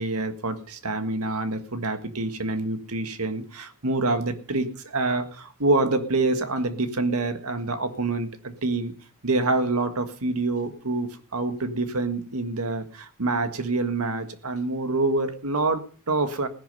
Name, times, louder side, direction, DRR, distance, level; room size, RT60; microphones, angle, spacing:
voice 1, 0.0-8.9 9.2-16.5, right 2 dB, 75° right, 9 dB, 1.7 m, -26 dB
17.0 x 11.0 x 5.5 m, 0.42 s
head